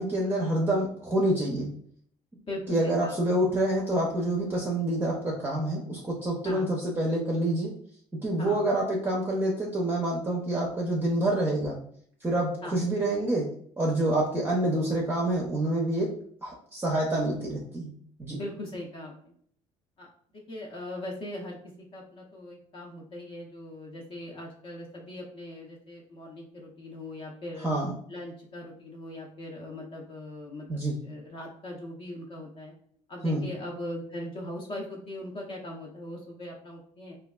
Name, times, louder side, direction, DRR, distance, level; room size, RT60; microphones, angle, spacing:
voice 1, 0.0-1.7 2.7-7.7 8.1-11.8 12.2-13.5 13.8-16.1 16.4-17.9 18.2-18.4 27.6-27.9 30.7-31.0 33.2-33.5, right 1 dB, 15° right, -2 dB, 0.5 m, -27 dB
voice 2, 2.5-3.2 6.4-6.7 8.4-8.6 12.6-12.8 18.3-19.3 20.0-27.7 28.1-32.7 33.1-37.2, left 1 dB, 45° left, -1 dB, 0.6 m, -40 dB
3.2 x 2.3 x 2.2 m, 0.62 s
cardioid pair, 135°, 13 cm